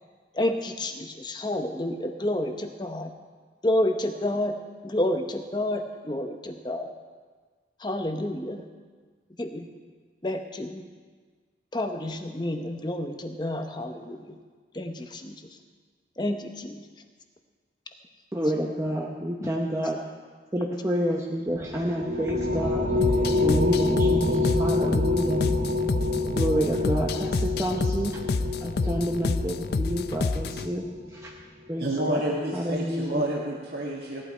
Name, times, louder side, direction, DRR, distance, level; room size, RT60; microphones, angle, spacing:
voice 1, 0.4-3.1 3.6-4.5 4.8-6.9 7.8-8.6 9.4-9.7 10.2-10.8 11.7-14.3 14.7-15.3 16.2-16.8 19.4-19.5, left 1 dB, 25° left, 6 dB, 0.9 m, -29 dB
voice 2, 18.3-20.0 20.5-22.9 23.4-25.4 26.4-28.1 28.6-30.8 31.2-31.3 31.7-32.2 32.5-33.2, equal, 15° right, -1 dB, 0.8 m, -29 dB
sound 1, 21.5-31.2, left 2 dB, 85° right, 2.5 m, -27 dB
sound 2, 23.0-30.7, left 3 dB, 60° left, 0.5 m, -29 dB
voice 3, 31.8-34.2, right 1 dB, 65° right, -6 dB, 2.0 m, -29 dB
17.0 x 11.0 x 4.5 m, 1.5 s
head